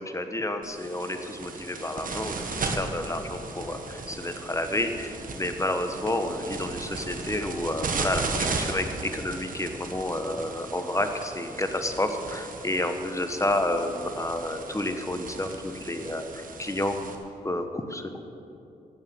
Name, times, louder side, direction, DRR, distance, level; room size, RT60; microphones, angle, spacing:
voice 1, 0.0-8.9 9.1-16.2 16.6-16.9 17.4-18.3, left 1 dB, 20° left, 7 dB, 1.3 m, -30 dB
sound 1, 0.6-17.1, right 3 dB, 55° right, 1.6 m, -36 dB
13.0 x 8.7 x 7.7 m, 2.8 s
supercardioid pair, 50°, 16 cm